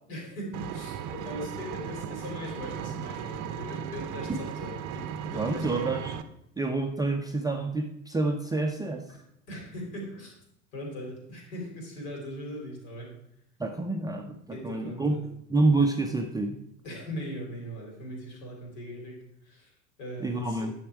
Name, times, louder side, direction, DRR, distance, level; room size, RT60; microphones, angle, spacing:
voice 1, 0.1-5.9 9.5-10.3 10.7-13.1 14.5-15.3 16.8-19.2 19.4-19.7 20.0-20.7, equal, 60° left, -1 dB, 4.1 m, -39 dB
Vehicle, 0.5-6.2, right 8 dB, 40° right, 0.8 m, -36 dB
voice 2, 5.3-6.1 6.6-9.0 13.6-14.4 14.6-15.2 15.5-16.6 20.2-20.7, right 2 dB, 10° right, 2 dB, 0.6 m, -27 dB
10.0 x 6.4 x 4.7 m, 0.75 s
figure-of-eight pair, 75°, 48 cm